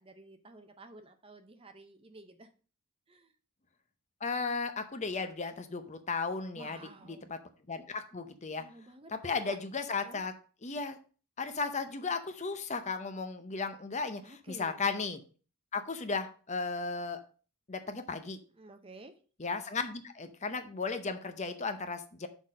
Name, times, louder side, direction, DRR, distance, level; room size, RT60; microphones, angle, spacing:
voice 1, 0.0-2.5 3.1-3.3 6.5-7.3 8.6-9.6 9.9-10.2 14.2-14.8 18.5-19.1, right 2 dB, 25° right, 8 dB, 0.6 m, -52 dB
voice 2, 4.2-6.8 7.1-7.4 7.7-8.6 9.1-10.3 10.6-11.0 11.4-15.2 15.7-17.2 17.7-18.4 19.4-22.3, left 4 dB, 30° left, 9 dB, 0.7 m, -35 dB
6.2 x 4.0 x 6.3 m, 0.39 s
head